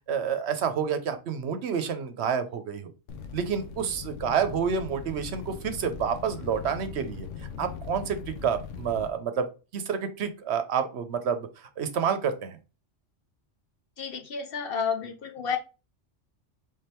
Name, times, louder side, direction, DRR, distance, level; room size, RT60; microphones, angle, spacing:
voice 1, 0.1-2.9 3.3-7.3 7.6-9.5 9.7-12.6, right 7 dB, 65° right, 10 dB, 0.9 m, -29 dB
sound 1, 3.1-9.1, left 6 dB, 85° left, 1.0 m, -40 dB
voice 2, 14.0-15.6, left 6 dB, 55° left, 4 dB, 0.8 m, -31 dB
3.5 x 3.4 x 4.3 m, 0.31 s
omnidirectional pair, 1.2 m